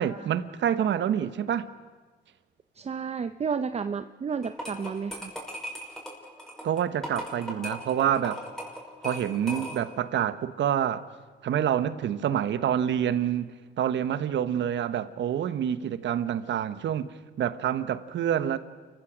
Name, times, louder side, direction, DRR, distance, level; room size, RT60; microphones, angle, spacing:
voice 1, 0.0-1.7 6.6-8.4 9.0-11.1 11.4-18.6, right 9 dB, 65° right, 1.1 m, -27 dB
voice 2, 2.8-5.3, right 6 dB, 30° right, 0.7 m, -31 dB
sound 1, 4.4-10.0, equal, ahead, 5.7 m, -38 dB
29.5 x 15.0 x 6.1 m
cardioid pair, 90°, 20 cm